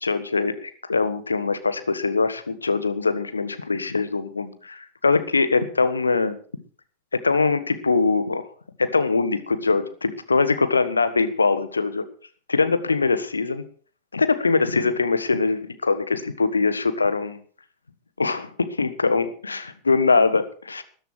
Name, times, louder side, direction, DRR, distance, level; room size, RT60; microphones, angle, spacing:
voice 1, 0.0-6.4 7.1-8.5 8.8-12.0 12.5-13.6 14.1-17.4 18.2-20.8, left 4 dB, 75° left, 12 dB, 1.4 m, -22 dB
13.5 x 11.0 x 6.2 m, 0.42 s
figure-of-eight pair, 90°, 0 cm